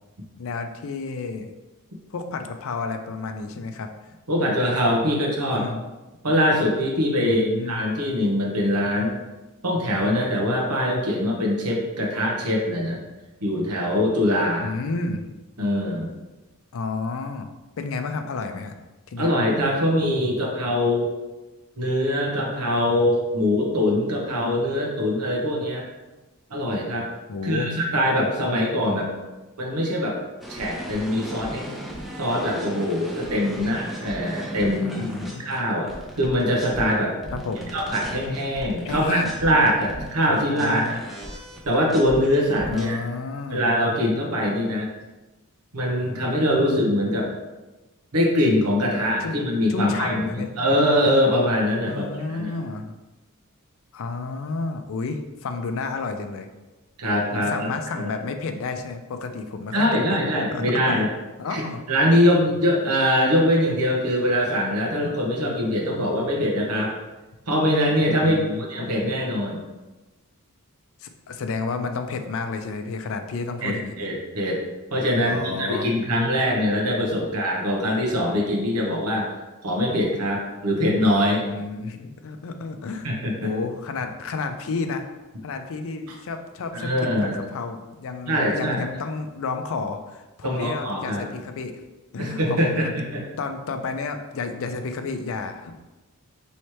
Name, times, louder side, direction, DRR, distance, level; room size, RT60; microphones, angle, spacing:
voice 1, 0.4-1.5 2.1-3.9 5.5-5.9 7.2-7.8 14.6-15.3 16.7-17.5 17.8-18.7 19.1-19.3 27.3-27.7 34.9-35.5 37.3-37.7 38.8-39.4 40.3-41.0 42.7-43.6 49.2-49.4 49.7-50.5 51.9-52.9 53.9-56.5 57.3-61.1 61.4-61.8 68.2-68.6 71.0-74.1 75.2-75.9 81.5-83.1 83.4-85.1 85.4-91.8 92.1-92.9 93.4-95.8, left 4 dB, 65° left, 7 dB, 0.4 m, -31 dB
voice 2, 4.3-5.7 6.2-9.2 9.6-13.0 13.4-14.7 15.6-16.1 19.2-21.1 21.8-25.8 26.5-27.1 27.4-29.1 29.6-30.2 30.5-31.7 32.2-35.0 35.4-35.9 36.2-37.1 37.7-41.0 41.7-43.0 43.5-44.9 45.7-47.3 48.1-50.3 50.6-52.5 57.0-57.7 58.0-58.1 59.7-61.1 61.5-66.9 67.5-69.6 73.6-73.7 74.0-74.6 74.9-79.3 79.6-81.4 83.0-83.5 86.7-87.4 88.3-88.8 90.4-91.2 92.2-93.2, equal, 85° right, -1 dB, 1.0 m, -23 dB
sound 1, 30.4-36.9 37.2-42.9, equal, ahead, 0.6 m, -36 dB
3.1 x 3.1 x 4.3 m, 1.1 s
head